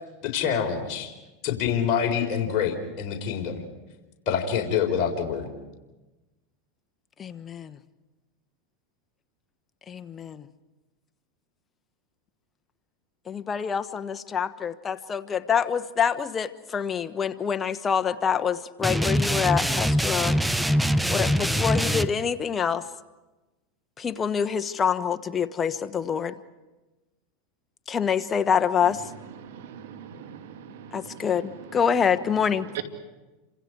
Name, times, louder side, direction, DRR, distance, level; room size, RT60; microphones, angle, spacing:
voice 1, 0.2-1.1 1.4-3.6 4.3-5.5, left 7 dB, 50° left, 1 dB, 4.3 m, -26 dB
voice 2, 7.2-7.8 9.9-10.5 13.3-20.4 21.1-22.9 24.0-26.3 27.9-29.0 30.9-32.7, left 7 dB, 25° left, 9 dB, 1.2 m, -26 dB
sound 1, 18.8-22.1, equal, 5° right, 0.8 m, -23 dB
voice 3, 29.4-31.3 32.7-32.8, right 10 dB, 80° right, 6 dB, 2.8 m, -40 dB
29.5 x 26.5 x 4.8 m, 1.1 s
hypercardioid pair, 105°, 0 cm